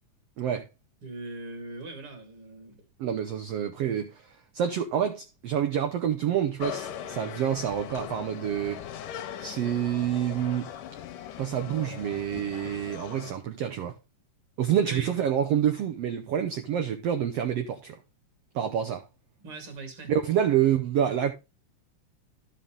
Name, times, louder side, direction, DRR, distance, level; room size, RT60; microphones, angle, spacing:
voice 1, 0.4-0.7 3.0-8.8 9.4-10.7 11.4-13.9 14.6-18.0 18.5-19.0 20.1-21.3, right 9 dB, 70° right, 1.5 m, -27 dB
voice 2, 1.0-2.8 14.8-15.1 19.4-20.1, right 2 dB, 45° right, 2.9 m, -40 dB
sound 1, 6.6-13.3, left 9 dB, 85° left, 2.4 m, -39 dB
12.5 x 5.7 x 3.7 m
omnidirectional pair, 3.7 m